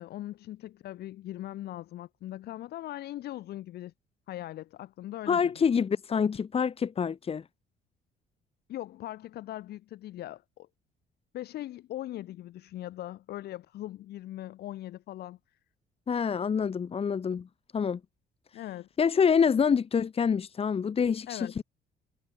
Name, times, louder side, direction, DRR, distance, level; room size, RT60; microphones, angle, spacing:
voice 1, 0.0-3.9 4.3-5.5 8.7-10.7 11.3-15.4 18.5-18.9 21.3-21.5, left 14 dB, 70° left, 7.5 m, -40 dB
voice 2, 5.3-7.4 16.1-17.5 17.7-18.0 19.0-21.6, left 6 dB, 35° left, 2.6 m, -26 dB
cardioid pair, 110°, 17 cm